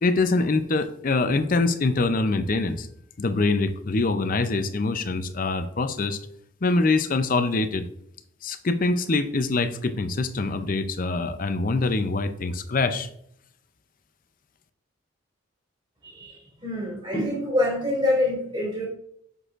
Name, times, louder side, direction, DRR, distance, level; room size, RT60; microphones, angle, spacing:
voice 1, 0.0-2.9 3.2-6.2 6.6-7.8 8.4-13.1, left 3 dB, 40° left, 9 dB, 0.5 m, -24 dB
voice 2, 16.0-16.3 16.6-18.9, left 1 dB, 25° right, -3 dB, 2.6 m, -25 dB
7.6 x 6.2 x 2.5 m, 0.72 s
head